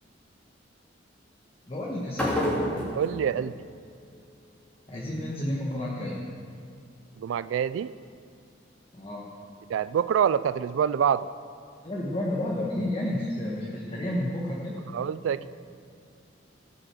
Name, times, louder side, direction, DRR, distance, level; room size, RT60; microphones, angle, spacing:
voice 1, 1.7-2.5 4.9-6.2 8.9-9.3 11.8-14.8, left 1 dB, 30° left, -3 dB, 1.4 m, -31 dB
sound 1, 2.1-4.2, equal, 5° left, 3.0 m, -30 dB
voice 2, 2.9-3.5 7.2-7.9 9.7-11.3 14.9-15.5, right 8 dB, 90° right, 15 dB, 0.3 m, -26 dB
17.5 x 6.4 x 7.6 m, 2.3 s
head